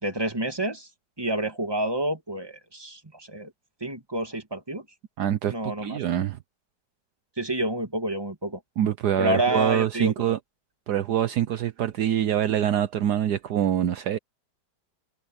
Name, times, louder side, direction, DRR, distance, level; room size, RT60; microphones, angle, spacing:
voice 1, 0.0-0.9 1.2-3.5 3.8-4.8 5.5-6.0 7.4-8.6 9.2-10.4, right 1 dB, 15° right, 2.5 m, -28 dB
voice 2, 5.2-6.4 8.8-10.4 10.9-14.2, right 10 dB, 70° right, 1.3 m, -25 dB
omnidirectional pair, 1.9 m